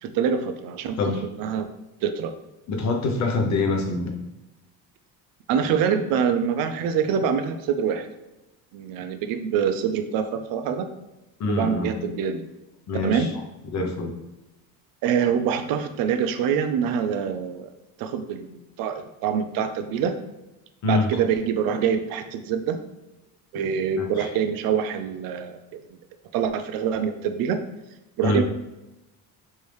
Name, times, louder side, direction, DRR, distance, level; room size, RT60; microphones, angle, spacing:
voice 1, 0.0-1.0 1.2-1.7 2.0-2.3 5.5-8.1 8.7-10.9 11.5-12.4 13.0-13.3 15.0-17.7 18.0-20.1 20.8-22.8 23.5-25.6 26.3-27.6 28.2-28.4, right 7 dB, 70° right, 8 dB, 0.5 m, -25 dB
voice 2, 2.7-4.1 11.4-11.9 12.9-13.3 13.6-14.1 20.8-21.2 24.0-24.3 28.2-28.4, left 3 dB, 50° left, 3 dB, 0.7 m, -25 dB
3.3 x 2.7 x 3.1 m, 0.98 s
cardioid pair, 120°, 37 cm